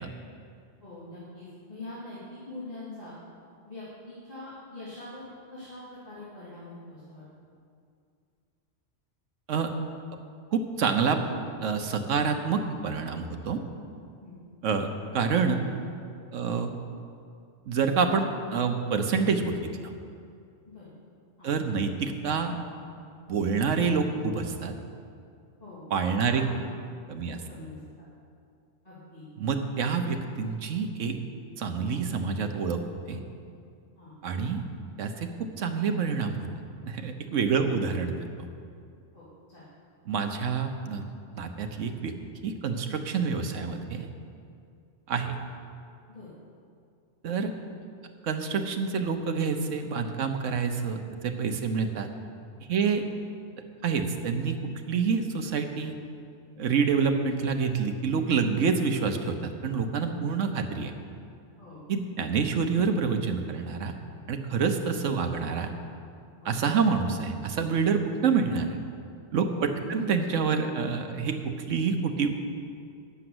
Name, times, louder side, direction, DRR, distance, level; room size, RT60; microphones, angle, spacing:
voice 1, 0.8-3.2 3.6-7.2 14.2-14.4 16.4-16.5 20.6-20.9 21.4-21.5 25.6-25.9 26.1-26.7 27.3-28.0 28.8-29.3 33.9-34.2 37.6-37.9 39.1-39.7 46.1-46.3 52.8-53.0 61.6-61.8 64.8-64.9 66.4-66.5 69.4-70.0, left 2 dB, 30° left, -12 dB, 2.8 m, -44 dB
voice 2, 10.5-11.2 11.6-13.6 14.6-15.6 16.3-16.7 17.7-18.3 18.5-19.9 21.4-22.6 23.3-24.7 25.9-26.4 27.1-27.4 29.4-31.2 31.6-32.8 33.1-33.2 34.2-34.6 35.0-36.5 36.9-38.3 40.1-41.1 41.3-42.1 42.4-44.1 45.1-45.4 47.2-47.5 48.2-52.1 52.7-53.0 53.8-54.6 54.9-55.9 56.6-60.9 61.9-63.9 64.3-65.7 66.4-68.8 69.3-72.3, right 5 dB, 85° right, 6 dB, 1.2 m, -27 dB
9.9 x 7.0 x 7.7 m, 2.4 s
omnidirectional pair, 1.3 m